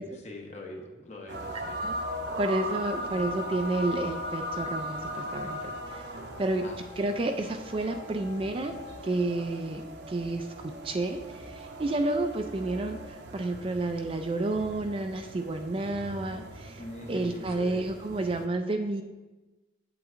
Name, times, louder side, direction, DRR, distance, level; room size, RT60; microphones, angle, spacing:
voice 1, 0.0-1.8 6.6-6.9 16.8-17.8, left 1 dB, 35° left, 1 dB, 1.0 m, -43 dB
sound 1, 1.3-18.5, equal, 60° right, 0.7 m, -39 dB
voice 2, 2.4-6.0 6.4-6.7 7.0-8.7 9.0-16.8 17.1-19.0, right 2 dB, 30° right, 6 dB, 0.3 m, -30 dB
8.0 x 7.8 x 2.5 m, 1.2 s
head